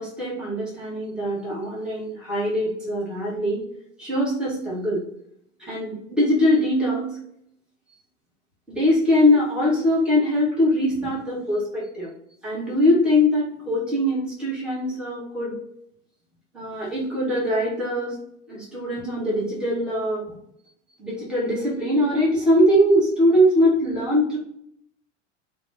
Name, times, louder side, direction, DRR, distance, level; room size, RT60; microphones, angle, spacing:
voice 1, 0.0-3.6 4.0-5.0 5.6-7.2 8.7-12.1 12.4-15.6 16.5-18.2 18.5-20.2 21.0-24.4, left 1 dB, ahead, -7 dB, 1.2 m, -22 dB
2.9 x 2.1 x 3.3 m, 0.72 s
hypercardioid pair, 85°, 38 cm